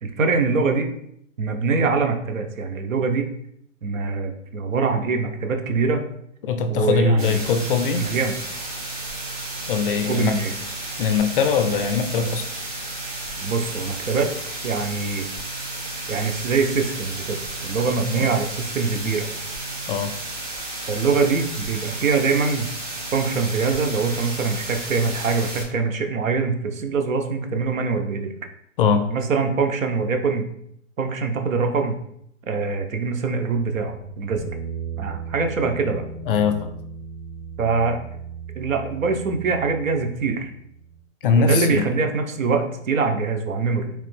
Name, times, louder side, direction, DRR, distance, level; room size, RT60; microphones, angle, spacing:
voice 1, 0.0-0.9 1.4-3.3 3.8-6.1 6.7-7.4 8.0-8.3 10.1-10.5 13.4-14.3 14.6-15.3 16.1-19.3 20.9-22.7 23.1-28.3 29.1-30.5 31.0-32.0 32.5-34.5 35.0-36.0 37.6-38.0 38.5-40.5 41.2-43.9, right 4 dB, 85° right, 5 dB, 0.8 m, -23 dB
voice 2, 6.4-8.1 9.7-10.4 11.0-12.5 18.1-18.3 19.9-20.1 28.8-29.1 36.3-36.7 41.2-41.9, left 4 dB, 45° left, 8 dB, 0.4 m, -21 dB
sound 1, 7.2-25.6, right 2 dB, 40° right, 1.3 m, -33 dB
sound 2, 33.5-40.9, right 5 dB, 25° right, 0.5 m, -36 dB
3.3 x 2.9 x 3.2 m, 0.73 s
hypercardioid pair, 145°, 39 cm